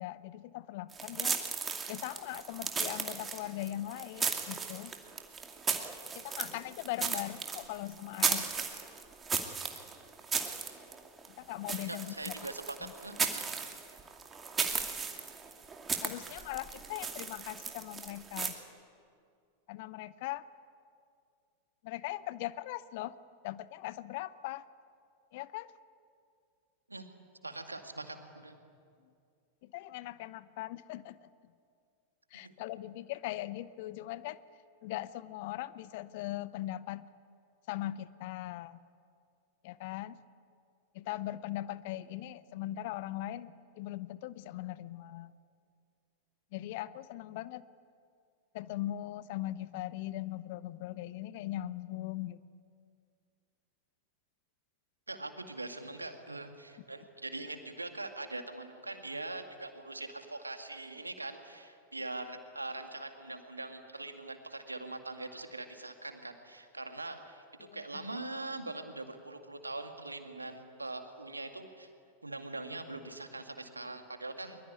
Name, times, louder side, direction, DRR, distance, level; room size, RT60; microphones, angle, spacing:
voice 1, 0.0-1.4 1.9-4.9 6.1-8.6 11.4-12.3 12.8-12.9 16.0-18.6 19.7-20.4 21.8-23.1 23.4-24.7 25.3-25.7 29.6-31.3 32.3-34.4 34.8-37.0 37.7-38.8 39.6-40.2 40.9-45.3 46.5-47.6 48.5-52.4 67.6-68.1, left 15 dB, 50° left, 17 dB, 0.8 m, -40 dB
sound 1, 0.9-18.5, right 5 dB, 20° right, 2.4 m, -36 dB
voice 2, 11.7-13.2 26.9-27.1 27.4-28.6 32.4-32.5 55.1-71.9 72.2-74.6, right 2 dB, 80° right, 6 dB, 2.2 m, -42 dB
23.0 x 22.5 x 9.7 m, 2.3 s
figure-of-eight pair, 90°, 0 cm